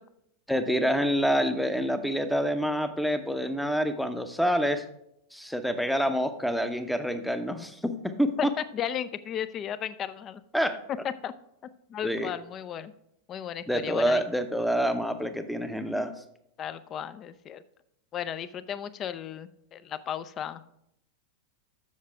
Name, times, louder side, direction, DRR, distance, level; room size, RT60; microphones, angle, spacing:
voice 1, 0.5-4.8 5.3-7.9 8.2-8.3 10.5-10.8 12.0-12.3 13.7-16.1, equal, ahead, 9 dB, 0.7 m, -27 dB
voice 2, 8.4-10.4 11.0-11.3 11.9-12.9 13.3-14.2 16.6-17.6 18.1-20.7, left 9 dB, 30° left, 15 dB, 0.5 m, -35 dB
7.3 x 6.5 x 4.6 m, 0.77 s
figure-of-eight pair, 90°, 0 cm